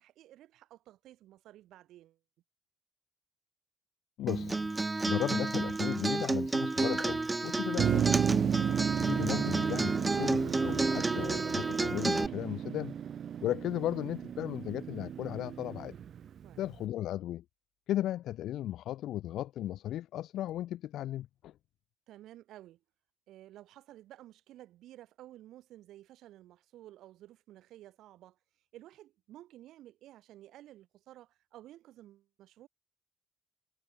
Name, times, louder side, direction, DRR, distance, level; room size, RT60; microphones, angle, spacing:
voice 1, 0.0-2.2 7.9-8.2 16.4-16.6 22.1-22.8 23.3-32.7, right 14 dB, 85° right, 6.9 m, -54 dB
voice 2, 4.2-4.7 5.1-8.0 9.0-12.9 13.4-15.9 16.6-17.4 17.9-21.5, left 13 dB, 80° left, 5.5 m, -36 dB
Acoustic guitar, 4.3-12.3, right 3 dB, 20° right, 2.2 m, -31 dB
Motor vehicle (road), 7.8-16.8, right 9 dB, 60° right, 0.8 m, -33 dB
cardioid pair, 90°, 0 cm